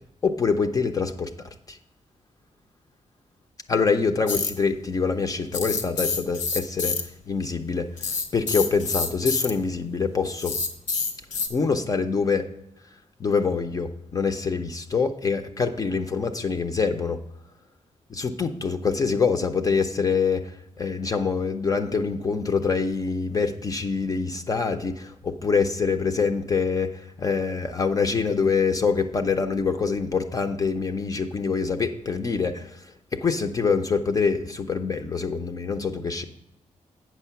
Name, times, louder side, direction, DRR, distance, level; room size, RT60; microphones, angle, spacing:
voice 1, 0.2-1.3 1.7-1.8 3.7-6.9 7.3-7.9 8.3-10.6 11.5-12.5 13.2-17.2 18.1-20.5 20.8-26.9 27.2-32.8 33.1-36.2, left 5 dB, 30° left, 7 dB, 0.5 m, -25 dB
sound 1, 4.3-4.5 5.5-7.0 8.0-9.5 10.4-11.5, left 5 dB, 85° left, 1.1 m, -27 dB
8.2 x 6.0 x 5.7 m, 0.82 s
wide cardioid pair, 170°, 13 cm